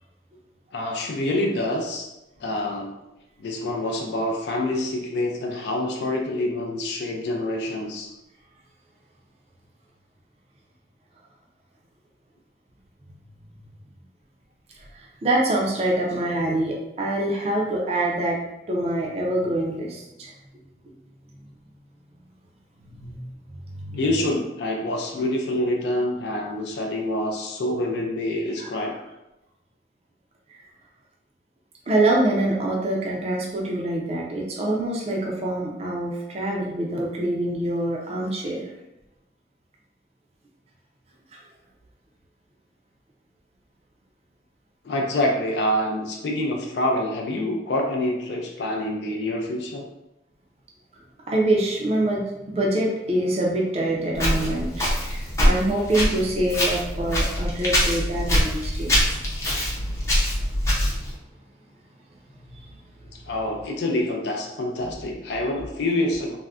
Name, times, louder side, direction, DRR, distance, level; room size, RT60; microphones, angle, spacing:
voice 1, 0.7-2.1 2.4-2.9 3.4-8.1 23.9-29.0 44.8-49.9 63.1-66.4, left 1 dB, 70° left, 1 dB, 0.4 m, -26 dB
voice 2, 14.8-18.4 18.7-20.3 22.9-23.3 23.8-24.0 28.6-28.7 30.5-30.6 31.9-38.7 41.3-41.4 51.3-59.1 60.8-60.9 62.7-62.8 64.8-64.9, right 1 dB, 35° right, -2 dB, 0.4 m, -25 dB
Walk footsteps, 54.1-61.1, equal, 15° left, 0.5 m, -24 dB
3.5 x 2.1 x 2.3 m, 0.94 s
head